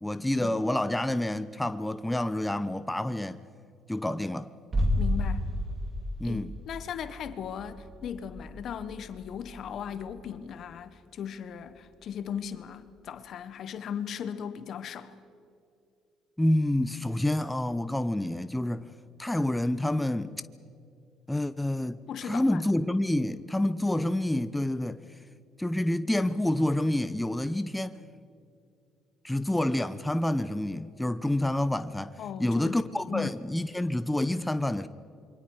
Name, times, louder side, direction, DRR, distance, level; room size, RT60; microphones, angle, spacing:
voice 1, 0.0-3.4 3.9-4.5 6.2-6.5 16.4-18.9 19.2-20.3 21.3-25.0 25.6-28.0 29.2-34.9, left 1 dB, 10° left, 0.8 m, -28 dB
sound 1, 4.7-10.4 10.7-10.8, left 1 dB, 35° right, 3.3 m, -32 dB
voice 2, 5.0-5.4 6.2-15.2 22.1-22.7 32.2-33.3, left 8 dB, 60° left, 1.4 m, -37 dB
27.0 x 24.0 x 4.9 m
supercardioid pair, 75°, 0 cm